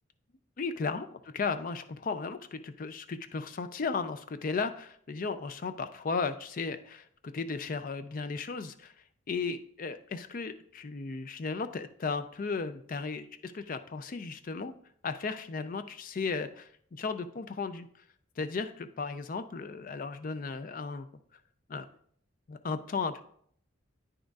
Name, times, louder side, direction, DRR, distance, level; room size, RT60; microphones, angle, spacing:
voice 1, 0.6-8.9 9.3-14.7 15.0-17.9 18.4-21.1 21.7-21.9 22.5-23.2, left 4 dB, 45° left, 11 dB, 0.4 m, -35 dB
9.1 x 6.3 x 2.4 m, 0.63 s
head